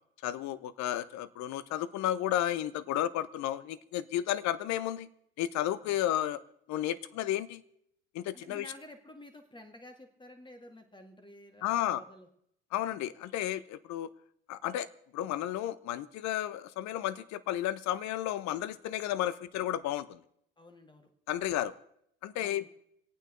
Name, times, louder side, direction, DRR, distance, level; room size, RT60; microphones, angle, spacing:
voice 1, 0.2-5.1 5.4-6.4 6.7-7.6 8.1-8.7 11.6-12.0 12.7-14.1 14.5-14.9 15.1-20.2 21.3-21.7 22.2-22.7, left 12 dB, 50° left, 17 dB, 0.8 m, -32 dB
voice 2, 8.3-12.3 20.6-21.1 22.4-22.7, left 1 dB, 15° left, 5 dB, 2.3 m, -51 dB
26.5 x 9.0 x 3.9 m, 0.71 s
hypercardioid pair, 70°, 35 cm